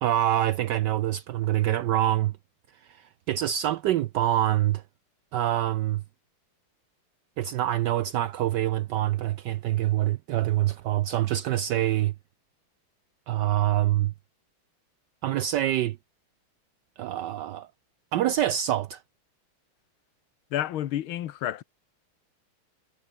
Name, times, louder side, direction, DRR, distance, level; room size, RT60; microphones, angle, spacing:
voice 1, 0.0-2.3 3.3-4.8 5.3-6.0 7.4-12.1 13.3-14.1 15.2-16.0 17.0-17.7 18.1-19.0, right 13 dB, 75° right, 1.0 m, -25 dB
voice 2, 20.5-21.6, left 12 dB, 75° left, 1.7 m, -30 dB
omnidirectional pair, 2.4 m